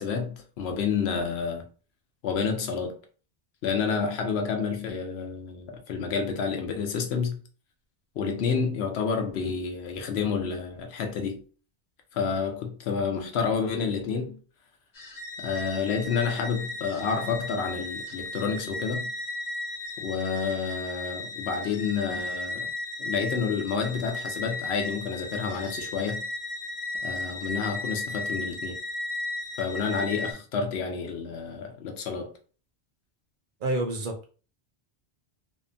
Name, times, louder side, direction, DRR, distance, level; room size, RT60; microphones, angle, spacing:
voice 1, 0.0-1.7 2.2-3.0 3.6-7.4 8.2-11.4 12.1-14.4 15.4-19.1 20.0-22.7 23.0-26.3 27.0-28.8 29.6-32.3, left 5 dB, 80° left, 0.9 m, -29 dB
sound 1, 14.9-30.3, left 2 dB, 45° left, 0.8 m, -35 dB
voice 2, 33.6-34.3, right 2 dB, 60° right, 0.6 m, -29 dB
2.7 x 2.2 x 2.5 m
omnidirectional pair, 1.1 m